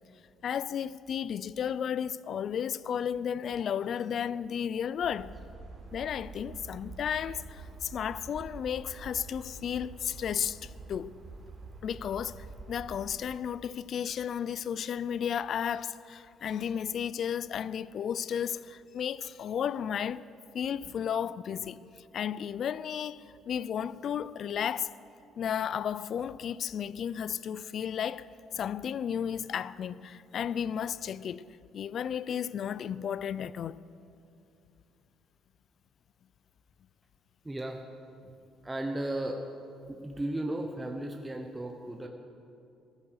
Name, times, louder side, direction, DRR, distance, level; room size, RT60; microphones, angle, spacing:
voice 1, 0.4-5.4 5.9-11.2 11.8-20.3 20.5-24.9 25.4-31.5 31.7-33.8, left 8 dB, 50° left, 0.4 m, -33 dB
sound 1, 5.0-13.2, right 3 dB, 30° right, 3.7 m, -46 dB
voice 2, 37.4-37.8 38.6-39.4 39.9-42.1, right 1 dB, 10° right, 0.9 m, -35 dB
14.5 x 13.0 x 6.5 m
cardioid pair, 145°, 0 cm